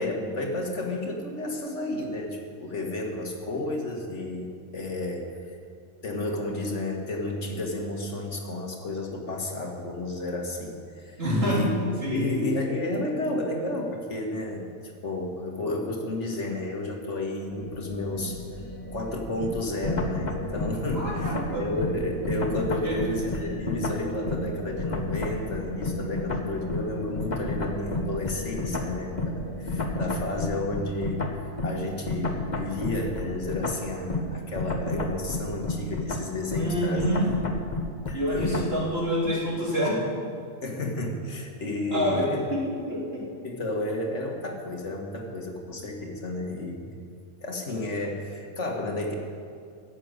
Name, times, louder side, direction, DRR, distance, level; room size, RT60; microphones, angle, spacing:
voice 1, 0.0-5.5 6.0-11.2 11.4-14.7 15.0-37.0 38.3-38.7 40.6-42.4 43.4-47.0 47.4-49.1, left 2 dB, 60° left, 1 dB, 2.0 m, -32 dB
voice 2, 11.2-11.7 12.0-12.3 20.9-21.7 22.8-23.0 36.5-37.3 38.1-40.0 41.9-43.2, equal, 45° right, -5 dB, 4.0 m, -27 dB
sound 1, 17.5-30.4, left 3 dB, 15° left, 2.0 m, -39 dB
sound 2, 19.4-24.5 24.8-38.8, left 2 dB, 35° left, 1.3 m, -31 dB
15.5 x 7.8 x 9.6 m, 2.3 s
omnidirectional pair, 1.4 m